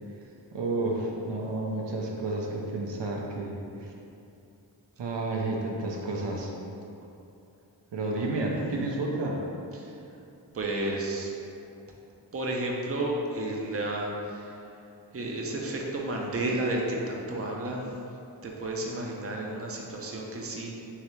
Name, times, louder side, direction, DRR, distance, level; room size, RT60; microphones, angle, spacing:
voice 1, 0.5-3.9 5.0-6.5 7.9-9.4, right 2 dB, 75° right, -1 dB, 0.6 m, -31 dB
voice 2, 10.5-11.3 12.3-14.6 15.1-18.0 18.4-20.8, right 1 dB, 35° right, -1 dB, 0.6 m, -32 dB
3.7 x 3.2 x 3.1 m, 2.7 s
wide cardioid pair, 50°, 43 cm